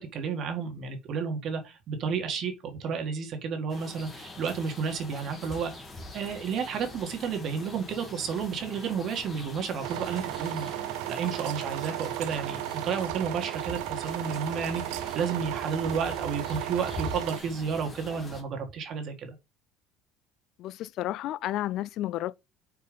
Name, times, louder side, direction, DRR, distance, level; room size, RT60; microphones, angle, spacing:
voice 1, 0.0-2.5 2.8-5.7 6.1-10.7 11.1-19.4, right 6 dB, 50° right, 1.8 m, -32 dB
sound 1, 3.7-18.4, left 2 dB, 20° left, 1.9 m, -44 dB
sound 2, 9.8-17.4, right 15 dB, 90° right, 0.5 m, -35 dB
voice 2, 20.6-22.3, left 14 dB, 60° left, 0.4 m, -32 dB
5.1 x 4.4 x 5.2 m
cardioid pair, 130°, 0 cm